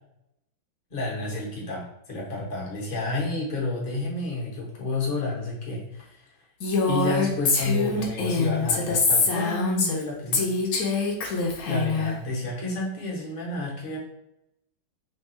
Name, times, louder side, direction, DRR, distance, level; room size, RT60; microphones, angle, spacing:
voice 1, 0.9-6.3 6.8-10.5 11.7-14.0, left 2 dB, 35° left, -3 dB, 0.8 m, -30 dB
Female speech woman speaking, 6.6-10.0 10.3-12.1, left 3 dB, 65° left, 0.9 m, -24 dB
3.5 x 2.3 x 4.2 m, 0.80 s
omnidirectional pair, 2.3 m